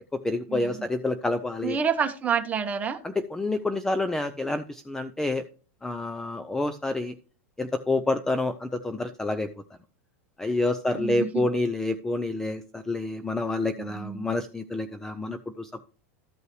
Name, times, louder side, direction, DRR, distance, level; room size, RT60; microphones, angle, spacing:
voice 1, 0.1-1.8 3.0-5.4 5.8-7.1 7.6-9.5 10.4-15.8, left 2 dB, 5° left, 10 dB, 0.5 m, -28 dB
voice 2, 1.6-3.0 10.9-11.4 13.8-14.3, right 7 dB, 20° right, 6 dB, 1.3 m, -28 dB
13.5 x 5.5 x 3.1 m, 0.38 s
supercardioid pair, 140°, 8 cm